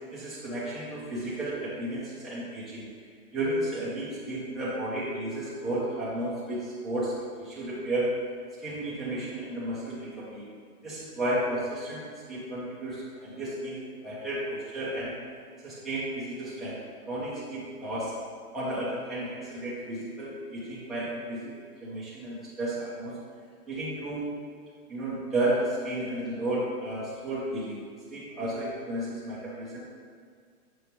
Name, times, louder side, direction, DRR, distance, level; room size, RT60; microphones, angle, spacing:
voice 1, 0.1-2.9 3.3-7.1 7.4-8.2 8.6-10.5 10.8-15.2 15.6-18.2 18.5-21.5 21.8-23.2 23.7-24.3 24.9-27.8 28.1-29.8, right 1 dB, ahead, -10 dB, 0.6 m, -33 dB
7.1 x 4.9 x 3.0 m, 2.1 s
hypercardioid pair, 155°, 45 cm